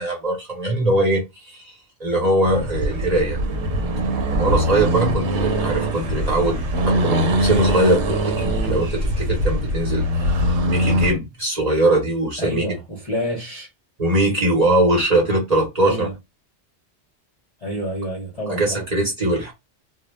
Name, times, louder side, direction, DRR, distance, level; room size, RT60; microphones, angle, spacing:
voice 1, 0.0-1.7 2.0-3.4 4.3-12.6 14.0-16.1 18.6-19.5, right 1 dB, 40° right, 0.9 m, -21 dB
Accelerating revving vroom, 2.4-11.2, right 1 dB, 90° right, 0.9 m, -22 dB
voice 2, 12.4-13.7 15.8-16.1 17.6-18.8, right 1 dB, 40° left, 0.6 m, -28 dB
2.1 x 2.1 x 3.1 m
omnidirectional pair, 1.1 m